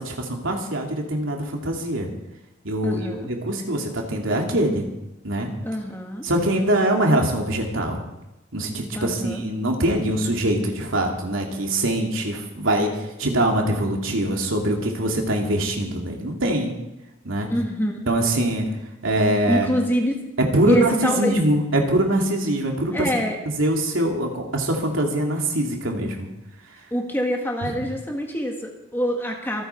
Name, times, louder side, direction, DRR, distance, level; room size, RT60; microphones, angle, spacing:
voice 1, 0.0-2.1 2.6-4.9 5.2-5.5 6.2-8.0 8.5-12.9 13.2-16.7 17.2-17.5 18.1-18.7 19.0-19.7 20.5-23.1 23.5-26.3 27.6-27.7, right 1 dB, 80° right, 1 dB, 2.9 m, -23 dB
voice 2, 2.8-3.3 5.6-6.2 8.9-9.4 17.5-18.1 19.5-20.2 20.7-21.4 22.9-23.4 26.9-29.6, equal, 10° left, 1 dB, 1.7 m, -25 dB
25.5 x 9.1 x 4.6 m, 0.94 s
head